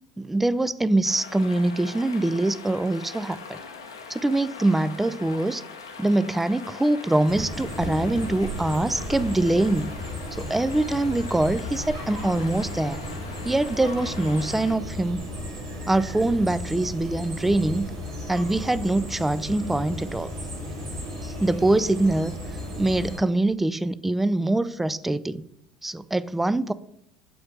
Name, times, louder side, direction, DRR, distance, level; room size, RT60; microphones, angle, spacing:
voice 1, 0.2-3.6 4.1-5.6 6.0-9.9 10.4-13.0 13.5-15.2 15.9-17.9 18.3-20.3 21.2-22.3 22.8-25.4 25.8-26.7, right 2 dB, 10° right, 0.3 m, -24 dB
sound 1, 1.0-14.7, left 5 dB, 80° left, 0.7 m, -41 dB
sound 2, 7.3-23.2, left 1 dB, 80° right, 1.9 m, -35 dB
7.8 x 4.7 x 3.3 m
figure-of-eight pair, 65°, 2 cm